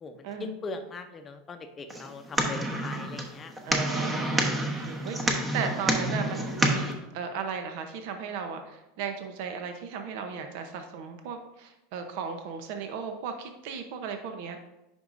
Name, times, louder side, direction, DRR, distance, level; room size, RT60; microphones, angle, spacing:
voice 1, 0.0-3.5, left 3 dB, 25° left, 7 dB, 0.7 m, -40 dB
sound 1, 1.9-6.9, right 1 dB, 15° right, 1.0 m, -28 dB
voice 2, 3.6-14.6, right 6 dB, 65° right, 6 dB, 0.8 m, -36 dB
9.2 x 5.4 x 2.6 m, 0.95 s
supercardioid pair, 130°, 0 cm